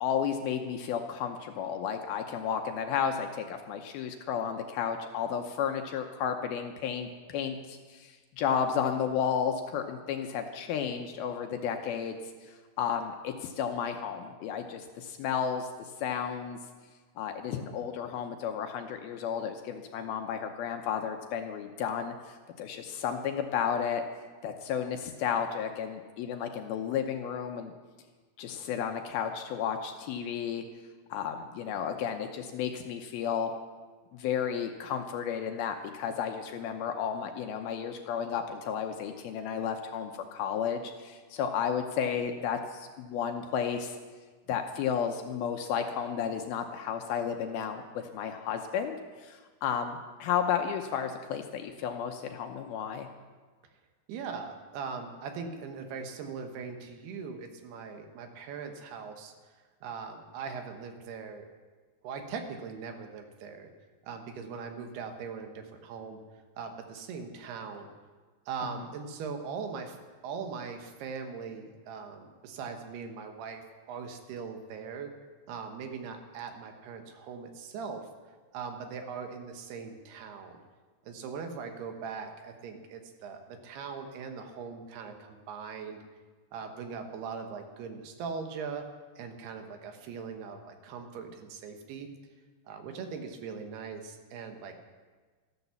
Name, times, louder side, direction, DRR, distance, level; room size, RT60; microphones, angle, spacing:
voice 1, 0.0-15.7 16.0-16.6 17.2-24.0 24.4-27.7 28.4-30.6 31.1-33.5 34.1-44.0 44.5-53.1 68.8-68.9, left 7 dB, 75° left, 5 dB, 2.5 m, -32 dB
voice 2, 54.1-59.3 59.8-61.5 62.0-63.7 64.0-66.2 66.6-67.9 68.5-70.0 70.2-73.6 73.9-75.1 75.5-78.0 78.5-80.6 81.0-86.0 86.5-88.8 89.2-92.1 92.7-94.7, right 5 dB, 75° right, 5 dB, 3.2 m, -40 dB
13.5 x 12.0 x 7.0 m, 1.4 s
omnidirectional pair, 4.8 m